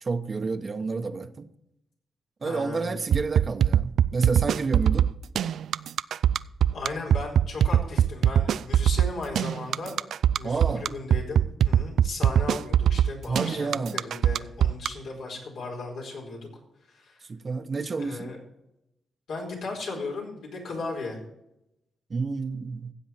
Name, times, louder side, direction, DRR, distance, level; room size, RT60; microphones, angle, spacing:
voice 1, 0.0-1.5 2.4-5.1 10.4-10.9 13.3-14.0 17.3-18.3 22.1-22.9, right 4 dB, 40° right, 0.9 m, -30 dB
voice 2, 2.4-2.9 6.7-9.9 10.3-16.4 16.9-17.2 18.0-18.4 19.3-21.2, left 3 dB, 75° left, 4.4 m, -36 dB
sound 1, 3.1-14.9, right 9 dB, 75° right, 0.3 m, -21 dB
15.0 x 7.7 x 4.5 m
cardioid pair, 80°, 0 cm